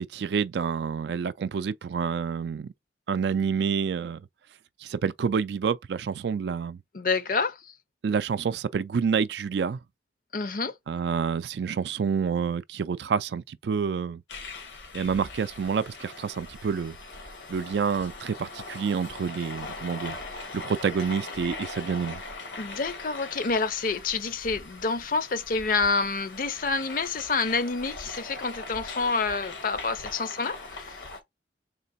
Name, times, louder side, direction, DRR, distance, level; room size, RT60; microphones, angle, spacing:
voice 1, 0.0-2.7 3.1-4.2 4.8-6.8 8.0-9.8 10.9-14.2 14.9-17.0 17.5-20.2 20.5-22.2, right 6 dB, 70° right, 0.3 m, -28 dB
voice 2, 6.9-7.7 10.3-10.7 22.6-31.0, left 4 dB, 50° left, 0.6 m, -28 dB
sound 1, 14.3-31.2, left 3 dB, 85° left, 1.5 m, -41 dB
3.8 x 3.2 x 4.1 m
head